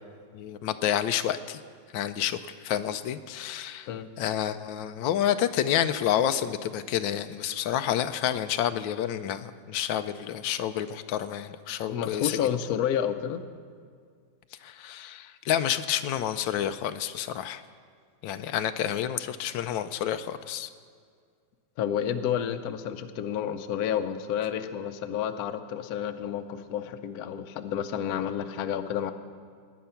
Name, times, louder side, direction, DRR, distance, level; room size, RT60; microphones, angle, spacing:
voice 1, 0.3-1.6 1.9-3.9 4.2-12.3 14.6-17.6 18.2-20.7, left 10 dB, 85° left, 10 dB, 1.3 m, -29 dB
voice 2, 11.9-13.4 21.8-29.1, left 9 dB, 65° left, 9 dB, 1.1 m, -30 dB
18.5 x 9.6 x 5.7 m, 2.1 s
omnidirectional pair, 2.0 m